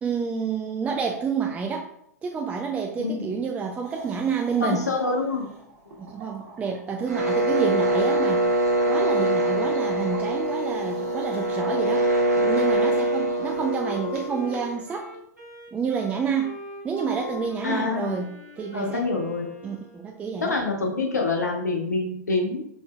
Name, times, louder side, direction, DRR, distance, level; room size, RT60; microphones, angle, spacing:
voice 1, 0.0-1.9 2.2-4.8 6.0-8.5 8.9-15.1 15.7-16.6 16.8-19.0 19.6-20.6, right 6 dB, 15° right, 2 dB, 0.3 m, -29 dB
sound 1, 3.8-13.7, right 3 dB, 50° right, 1.4 m, -46 dB
voice 2, 4.6-5.5 17.6-18.2 18.7-19.5 20.4-22.6, left 3 dB, 75° left, 2 dB, 0.9 m, -26 dB
sound 2, 7.1-14.8, right 1 dB, 70° right, 0.9 m, -24 dB
Wind instrument woodwind instrument, 11.7-20.2, left 1 dB, 85° right, 1.1 m, -42 dB
4.8 x 3.8 x 2.2 m, 0.74 s
figure-of-eight pair, 95°, 9 cm